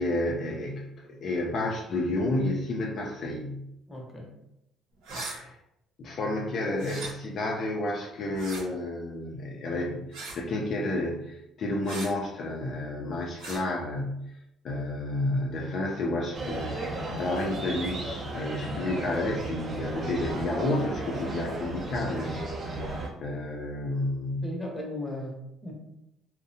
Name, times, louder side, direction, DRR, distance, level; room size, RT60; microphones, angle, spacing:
voice 1, 0.0-3.6 5.3-5.6 6.0-14.3 14.6-22.4 22.7-24.4, left 2 dB, 55° left, -1 dB, 0.4 m, -31 dB
voice 2, 3.9-4.3 24.4-25.7, left 1 dB, 15° left, -1 dB, 0.8 m, -36 dB
sound 1, 5.0-5.4 6.8-7.1 8.3-8.6 10.1-10.4 11.8-12.1 13.4-13.6, right 3 dB, 90° right, 0.8 m, -38 dB
sound 2, 16.3-23.1, right 1 dB, 40° right, 0.6 m, -34 dB
2.6 x 2.1 x 2.6 m, 0.84 s
cardioid pair, 90°, 0 cm